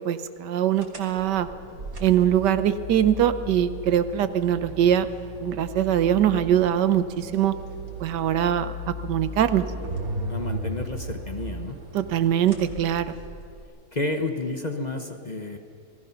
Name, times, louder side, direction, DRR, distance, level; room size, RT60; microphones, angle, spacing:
voice 1, 0.1-1.5 2.0-5.1 5.4-7.5 8.0-8.7 9.0-9.6 11.9-13.2, right 10 dB, 85° right, 12 dB, 1.4 m, -22 dB
sound 1, 0.8-13.6, right 1 dB, 55° right, 2.9 m, -36 dB
voice 2, 10.3-11.8 13.9-15.6, left 2 dB, 30° left, 5 dB, 0.9 m, -30 dB
27.5 x 18.5 x 5.8 m, 2.4 s
omnidirectional pair, 1.8 m